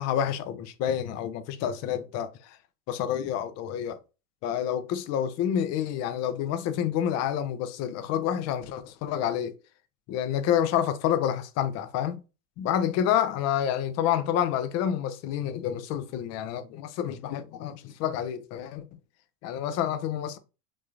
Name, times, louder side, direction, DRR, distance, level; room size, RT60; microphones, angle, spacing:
voice 1, 0.0-2.6 2.9-4.0 4.4-9.5 10.1-12.2 12.6-18.9 19.4-20.4, left 10 dB, 35° left, 0.5 m, -28 dB
3.6 x 3.1 x 2.4 m
figure-of-eight pair, 85°, 47 cm